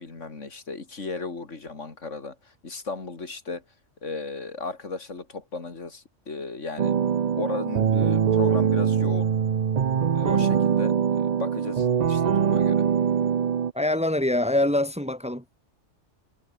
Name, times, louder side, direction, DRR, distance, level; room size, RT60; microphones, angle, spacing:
voice 1, 0.0-2.4 2.6-3.6 4.0-7.0 7.3-9.3 10.1-12.8, left 3 dB, 75° left, 3.1 m, -35 dB
sound 1, 6.8-13.7, right 7 dB, 45° right, 0.6 m, -23 dB
voice 2, 10.2-10.6 13.7-15.4, left 1 dB, 5° right, 1.9 m, -25 dB
omnidirectional pair, 1.3 m